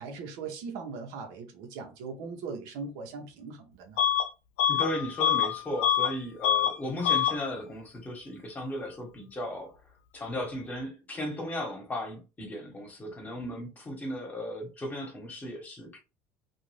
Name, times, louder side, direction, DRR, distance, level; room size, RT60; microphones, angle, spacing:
voice 1, 0.0-4.0, right 4 dB, 75° right, 0.8 m, -39 dB
Bus / Alarm, 4.0-4.3 4.6-6.2 6.4-6.8 7.0-7.4, left 9 dB, 90° left, 0.4 m, -25 dB
voice 2, 4.7-9.7 10.1-16.0, left 1 dB, 25° left, 1.2 m, -36 dB
2.5 x 2.3 x 3.1 m
supercardioid pair, 105°, 7 cm